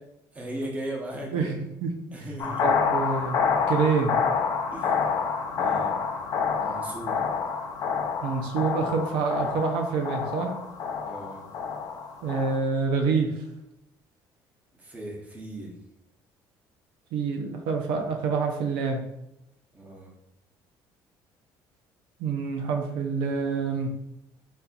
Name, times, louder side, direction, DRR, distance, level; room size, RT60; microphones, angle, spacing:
voice 1, 0.3-1.6 2.1-2.7 4.7-5.0 5.5-6.0 6.6-7.3 11.0-11.5 14.8-15.8 19.7-20.1, right 1 dB, 20° right, -1 dB, 1.0 m, -37 dB
voice 2, 1.3-1.9 2.6-4.2 8.2-10.5 12.2-13.3 17.1-19.0 22.2-23.9, right 5 dB, 90° right, 3 dB, 0.6 m, -27 dB
sound 1, 2.4-12.6, left 6 dB, 50° left, 0.6 m, -28 dB
4.2 x 3.9 x 2.4 m, 0.83 s
cardioid pair, 130°, 8 cm